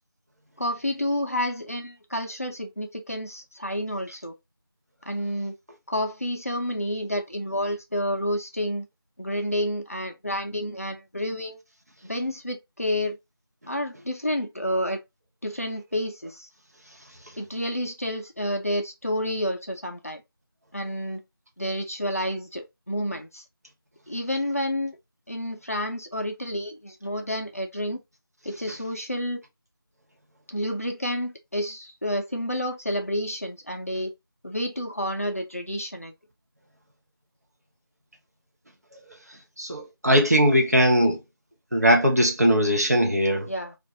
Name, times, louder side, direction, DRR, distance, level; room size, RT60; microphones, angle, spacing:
voice 1, 0.6-4.3 5.1-5.6 5.9-8.9 9.2-11.6 12.0-13.2 13.7-15.0 15.4-16.5 17.4-20.2 20.7-21.2 21.6-23.4 24.1-25.0 25.3-28.0 28.4-29.4 30.5-34.1 34.4-36.1 43.5-43.8, equal, 40° left, 0.5 m, -29 dB
voice 2, 39.6-41.2 41.7-43.5, equal, 40° right, 0.7 m, -20 dB
2.5 x 2.3 x 3.9 m
figure-of-eight pair, 180°, 13 cm